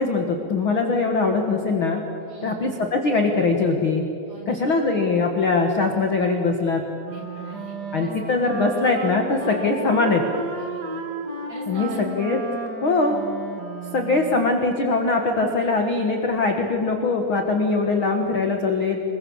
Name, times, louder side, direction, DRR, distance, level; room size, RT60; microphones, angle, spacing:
voice 1, 0.0-2.0 2.4-4.1 4.5-6.8 7.9-10.2 11.7-12.4 12.8-13.2 13.9-19.0, left 3 dB, 55° left, 3 dB, 1.4 m, -22 dB
voice 2, 2.3-2.7 4.3-4.7 7.1-8.4 9.4-9.6 10.5-11.0 11.5-12.0, equal, 40° right, -1 dB, 7.1 m, -43 dB
Wind instrument woodwind instrument, 7.0-14.5, right 2 dB, 70° right, 0.9 m, -33 dB
26.5 x 22.5 x 7.3 m, 2.7 s
omnidirectional pair, 4.8 m